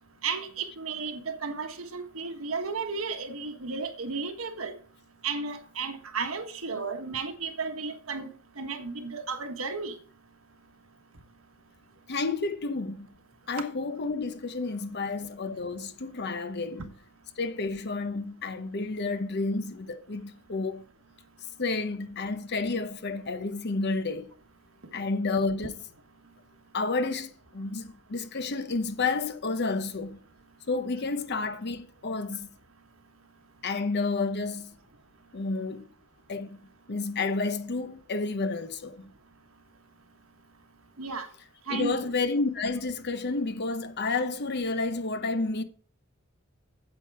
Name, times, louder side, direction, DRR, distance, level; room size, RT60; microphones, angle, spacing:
voice 1, 0.2-4.7 5.2-8.3 8.6-9.9 41.0-41.3 41.7-41.9, right 4 dB, 75° right, 1.4 m, -33 dB
voice 2, 12.1-13.1 13.5-16.9 17.4-20.8 21.6-24.3 24.9-25.8 26.7-30.2 30.7-32.5 33.6-34.7 35.3-35.9 36.3-36.6 36.9-39.0 41.4-45.6, left 3 dB, 55° left, 0.9 m, -30 dB
8.9 x 7.5 x 4.7 m
head